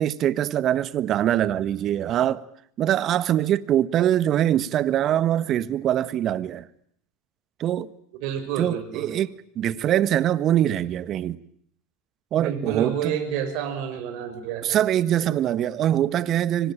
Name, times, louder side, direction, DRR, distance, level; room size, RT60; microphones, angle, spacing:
voice 1, 0.0-2.4 2.8-6.7 7.6-7.9 8.6-11.4 12.3-13.1 14.6-16.7, right 11 dB, 45° right, 1.5 m, -23 dB
voice 2, 8.2-9.2 12.4-14.8 15.2-15.4, right 8 dB, 60° right, 6.1 m, -29 dB
26.0 x 24.5 x 9.0 m
hypercardioid pair, 85°, 0 cm